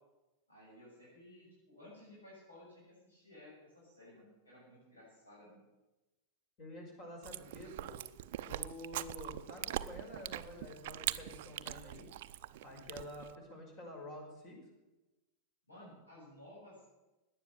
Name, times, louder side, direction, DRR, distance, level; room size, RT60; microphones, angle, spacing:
voice 1, 0.5-5.6 15.7-16.8, left 1 dB, 75° left, -5 dB, 7.0 m, -56 dB
voice 2, 6.6-8.0 8.5-12.1 12.6-14.6, left 1 dB, 40° left, 1 dB, 5.7 m, -49 dB
Chewing mastication, 7.2-13.4, right 14 dB, 50° right, 0.6 m, -42 dB
18.0 x 10.5 x 7.0 m, 1.0 s
figure-of-eight pair, 90°, 0 cm